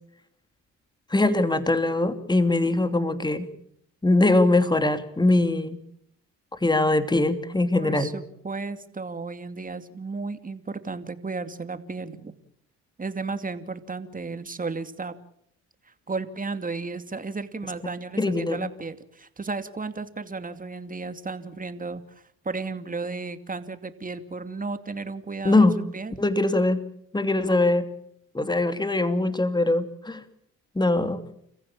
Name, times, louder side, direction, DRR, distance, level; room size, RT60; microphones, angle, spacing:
voice 1, 1.1-3.5 4.0-5.8 6.6-8.1 18.2-18.7 25.4-25.8 26.2-26.8 27.1-27.9 28.3-30.2 30.7-31.2, left 2 dB, 15° left, 9 dB, 2.9 m, -22 dB
voice 2, 7.7-12.3 13.0-15.2 16.1-25.7 25.9-26.1, right 4 dB, 25° right, 10 dB, 2.6 m, -34 dB
30.0 x 15.0 x 8.7 m, 0.71 s
supercardioid pair, 70°, 33 cm